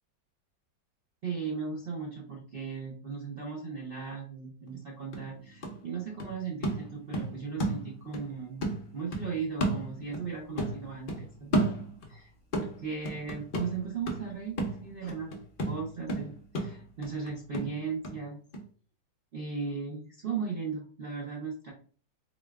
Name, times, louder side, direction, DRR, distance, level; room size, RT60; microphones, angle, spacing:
voice 1, 1.2-11.8 12.1-12.3 12.5-18.4 19.3-21.7, right 5 dB, 85° right, -2 dB, 0.5 m, -37 dB
sound 1, 4.7-4.8 5.1-8.3 8.6-10.3 10.6-12.2 12.5-18.2 18.5-18.6, right 1 dB, 65° left, 0.5 m, -33 dB
4.2 x 2.3 x 3.4 m, 0.43 s
omnidirectional pair, 2.0 m